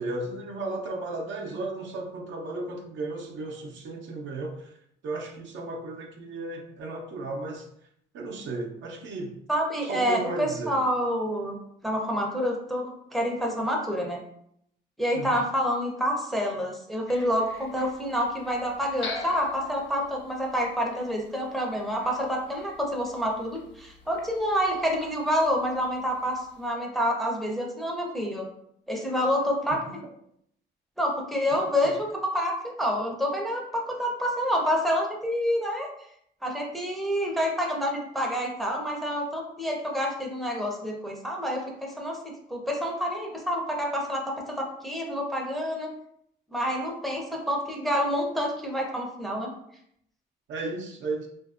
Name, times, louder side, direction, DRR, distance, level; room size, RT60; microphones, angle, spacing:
voice 1, 0.0-4.7 5.0-7.7 8.1-9.4 9.8-10.8 15.1-15.4 31.5-31.6 50.5-51.3, right 2 dB, 70° right, 1 dB, 0.6 m, -34 dB
voice 2, 9.5-11.6 11.8-14.2 15.0-28.5 28.9-29.8 31.0-35.9 36.4-45.9 46.5-49.5, equal, ahead, 0 dB, 0.5 m, -28 dB
sound 1, 17.1-26.7, left 3 dB, 65° left, 0.6 m, -45 dB
2.6 x 2.5 x 2.4 m, 0.72 s
cardioid pair, 90°, 20 cm